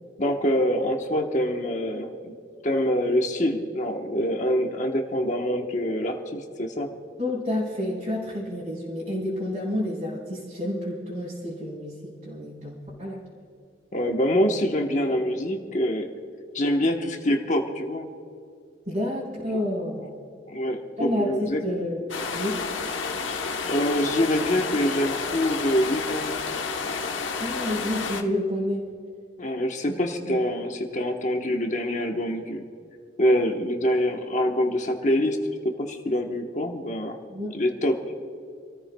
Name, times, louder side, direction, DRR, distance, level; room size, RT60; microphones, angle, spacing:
voice 1, 0.2-2.3 2.6-6.9 13.9-16.1 16.5-18.1 19.5-19.6 20.5-21.6 23.7-26.4 29.4-32.6 33.2-37.2 37.5-38.0, equal, 40° left, 3 dB, 1.1 m, -25 dB
voice 2, 7.2-13.2 18.9-20.1 21.0-22.0 22.3-22.6 27.4-28.8 29.9-30.0 30.3-30.5 37.3-37.5, left 1 dB, 45° right, -8 dB, 3.9 m, -29 dB
sound 1, 22.1-28.2, left 4 dB, 90° left, 1.1 m, -30 dB
29.0 x 14.5 x 2.3 m, 2.5 s
head